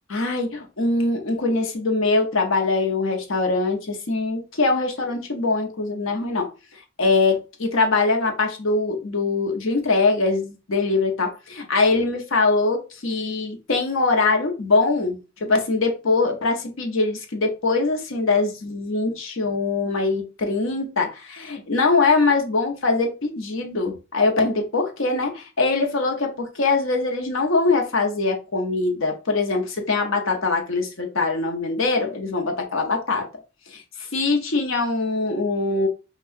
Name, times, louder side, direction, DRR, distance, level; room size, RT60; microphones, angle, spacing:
voice 1, 0.1-6.5 7.0-33.3 33.7-35.9, left 3 dB, 70° left, 0.8 m, -22 dB
5.6 x 2.3 x 2.6 m
head